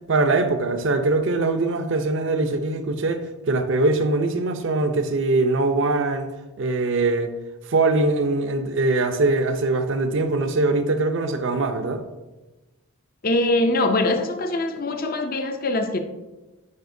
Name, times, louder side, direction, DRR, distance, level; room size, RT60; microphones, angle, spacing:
voice 1, 0.1-6.3 6.6-7.3 7.7-12.0, right 2 dB, 55° right, 0.6 m, -22 dB
voice 2, 13.2-16.0, left 2 dB, 40° left, 0.5 m, -22 dB
9.4 x 5.0 x 2.6 m
head